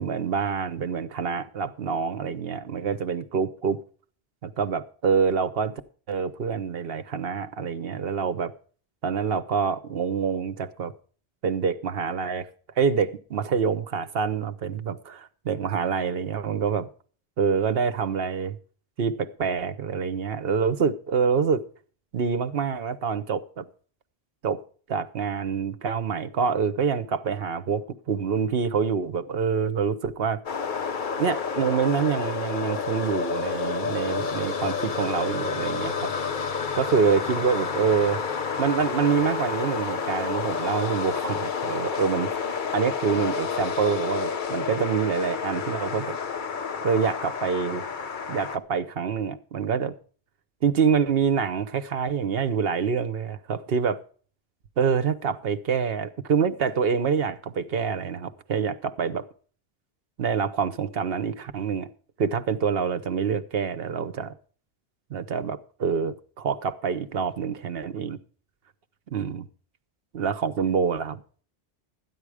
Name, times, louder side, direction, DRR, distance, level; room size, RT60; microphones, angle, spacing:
voice 1, 0.0-3.8 4.4-5.7 6.1-8.5 9.0-10.9 11.4-12.5 12.8-16.9 17.4-18.6 19.0-21.6 22.1-23.6 24.4-24.6 24.9-30.4 31.2-36.1 36.7-38.2 38.6-42.3 42.7-46.2 46.8-47.8 48.3-49.9 50.6-54.0 54.8-59.2 60.2-61.9 62.2-64.3 65.1-68.2 69.1-69.5 70.1-71.2, right 6 dB, 70° right, 1.0 m, -26 dB
sound 1, 30.5-48.6, left 5 dB, 55° left, 1.0 m, -30 dB
13.5 x 9.6 x 4.8 m
omnidirectional pair, 1.0 m